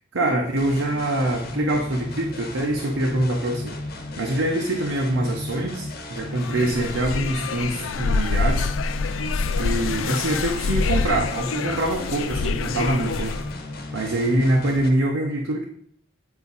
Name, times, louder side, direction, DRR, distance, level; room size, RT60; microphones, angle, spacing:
voice 1, 0.1-3.7 4.2-8.7 9.0-9.2 9.6-13.3 13.9-15.6, right 1 dB, 85° right, 0 dB, 0.9 m, -24 dB
sound 1, 0.6-14.9, left 2 dB, 50° left, 1.1 m, -35 dB
sound 2, 6.3-13.5, left 4 dB, 90° left, 0.5 m, -26 dB
9.0 x 4.8 x 4.1 m, 0.67 s
head